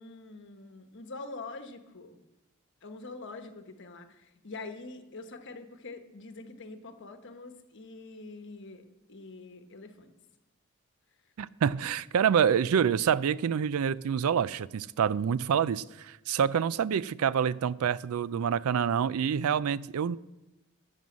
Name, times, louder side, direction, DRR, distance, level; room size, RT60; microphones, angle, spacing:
voice 1, 0.0-2.2 2.8-10.1, left 3 dB, 55° left, 7 dB, 1.1 m, -45 dB
voice 2, 11.4-20.2, right 7 dB, 80° right, 19 dB, 0.4 m, -27 dB
14.0 x 5.5 x 7.3 m, 1.0 s
head